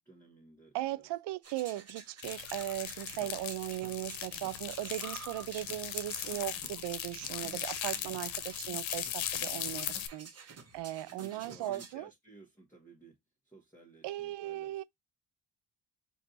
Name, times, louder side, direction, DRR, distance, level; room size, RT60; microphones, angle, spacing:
voice 1, 0.0-1.1 5.6-5.7 7.9-8.2 9.4-9.7 11.2-13.1 13.4-14.8, right 2 dB, 5° left, 1.4 m, -56 dB
voice 2, 0.7-9.9 10.1-12.1 14.0-14.8, right 15 dB, 65° right, 0.5 m, -38 dB
sound 1, 1.4-11.9, right 5 dB, 35° right, 1.1 m, -51 dB
sound 2, 2.2-10.1, left 10 dB, 90° left, 0.8 m, -39 dB
4.4 x 2.7 x 3.9 m
cardioid pair, 145°, 45 cm